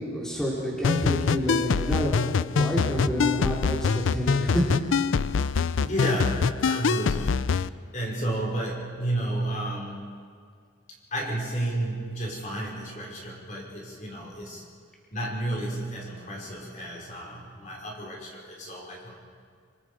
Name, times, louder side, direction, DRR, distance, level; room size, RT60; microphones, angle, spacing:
voice 1, 0.0-4.6 8.2-8.3, equal, 5° left, -6 dB, 3.7 m, -28 dB
sound 1, 0.8-7.7, left 5 dB, 85° left, 0.5 m, -25 dB
voice 2, 5.8-10.1 11.1-14.6 15.1-19.1, right 1 dB, 40° left, -2 dB, 5.3 m, -32 dB
27.0 x 26.0 x 5.0 m, 2.1 s
head